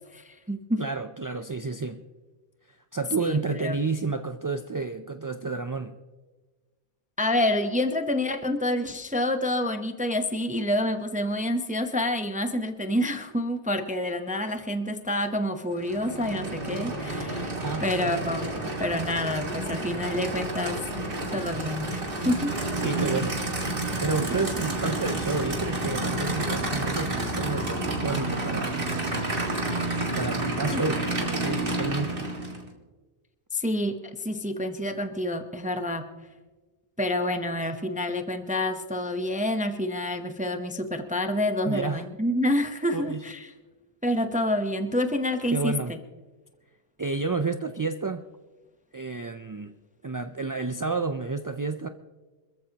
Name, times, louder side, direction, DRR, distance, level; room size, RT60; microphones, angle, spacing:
voice 1, 0.1-0.8 3.2-3.8 7.2-20.8 21.3-21.9 22.1-22.5 30.7-30.8 33.5-36.0 37.0-43.5 44.0-46.0, left 1 dB, 10° right, 7 dB, 0.7 m, -28 dB
voice 2, 0.8-2.0 2.7-6.0 17.6-17.9 22.8-23.4 24.0-28.8 30.1-31.0 31.3-32.3 41.7-42.0 42.9-43.2 45.5-45.9 47.0-48.3 48.9-49.7 50.0-51.9, right 4 dB, 35° right, 8 dB, 0.3 m, -30 dB
Aircraft / Idling, 15.7-32.7, right 2 dB, 60° right, 2.2 m, -30 dB
26.0 x 14.5 x 2.9 m, 1.3 s
omnidirectional pair, 1.1 m